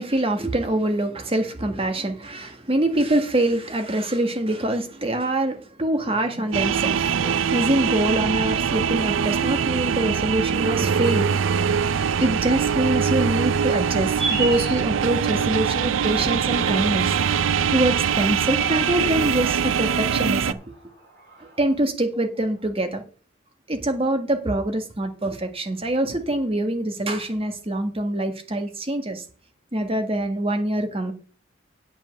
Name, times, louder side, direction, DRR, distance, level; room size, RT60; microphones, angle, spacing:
voice 1, 0.0-11.7 12.2-17.2 17.7-20.7 21.4-23.0 23.7-29.2 29.7-31.1, right 1 dB, 30° right, 1.8 m, -24 dB
sound 1, 6.5-20.5, right 7 dB, 85° right, 0.5 m, -23 dB
sound 2, 14.2-21.7, right 4 dB, 60° right, 4.4 m, -37 dB
8.8 x 5.3 x 7.9 m
head